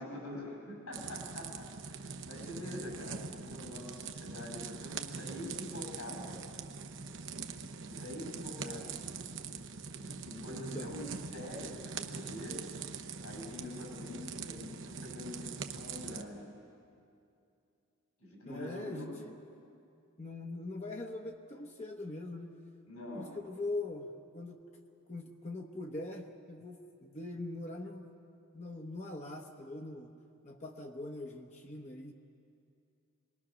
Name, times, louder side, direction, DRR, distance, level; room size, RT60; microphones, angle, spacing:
voice 1, 0.0-6.7 7.7-8.9 9.9-12.6 13.2-16.5 18.2-19.2 22.9-23.4, left 1 dB, 80° left, -1 dB, 6.6 m, -45 dB
sound 1, 0.9-16.2, right 5 dB, 55° right, 0.9 m, -43 dB
voice 2, 8.6-9.0 10.5-10.9 18.5-19.3 20.2-22.5 23.2-24.6 25.1-28.1 28.5-30.1 30.4-32.1, left 2 dB, 30° left, 1 dB, 1.0 m, -42 dB
25.5 x 20.5 x 6.2 m, 2.5 s
head